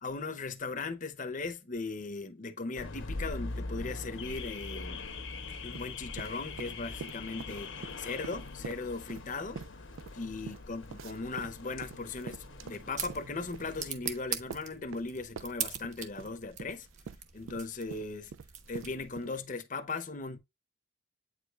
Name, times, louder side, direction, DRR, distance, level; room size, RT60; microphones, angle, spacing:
voice 1, 0.0-5.0 5.6-9.6 10.1-16.9 17.3-18.3 18.7-20.4, left 3 dB, 40° left, 0.8 m, -38 dB
Car / Alarm, 2.8-13.9, left 3 dB, 75° left, 1.0 m, -42 dB
sound 1, 5.6-7.5 7.8-15.1 15.4-19.3, right 6 dB, 80° right, 0.4 m, -45 dB
sound 2, 12.3-19.3, right 7 dB, 40° right, 1.1 m, -42 dB
8.7 x 4.9 x 2.4 m
head